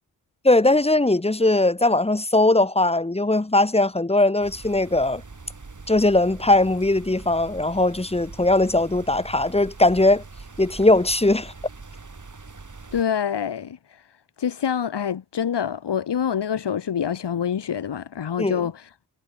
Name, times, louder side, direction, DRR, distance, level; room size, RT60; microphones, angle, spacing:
voice 1, 0.4-5.2 5.9-10.2 10.6-11.5 18.4-18.6, left 2 dB, 15° left, 1.1 m, -19 dB
sound 1, 4.4-13.0, right 3 dB, 45° right, 7.5 m, -42 dB
voice 2, 12.9-14.0 14.4-18.9, left 8 dB, 85° left, 3.3 m, -26 dB
cardioid pair, 40°, 40 cm